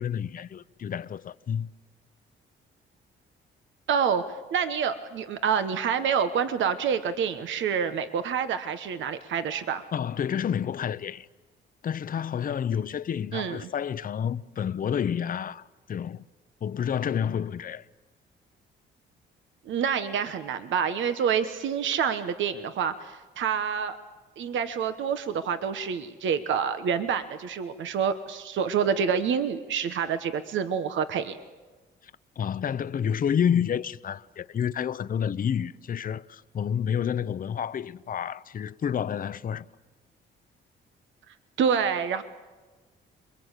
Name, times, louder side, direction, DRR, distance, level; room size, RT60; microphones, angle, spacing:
voice 1, 0.0-1.7 9.9-11.3 11.8-16.2 16.6-17.8 32.4-39.6, left 8 dB, 45° left, 0.7 m, -29 dB
voice 2, 3.9-4.2 4.5-9.8 13.3-13.7 19.7-24.0 24.4-31.4 41.6-42.2, right 7 dB, 70° right, 1.2 m, -27 dB
28.0 x 22.5 x 8.2 m
cardioid pair, 90°, 20 cm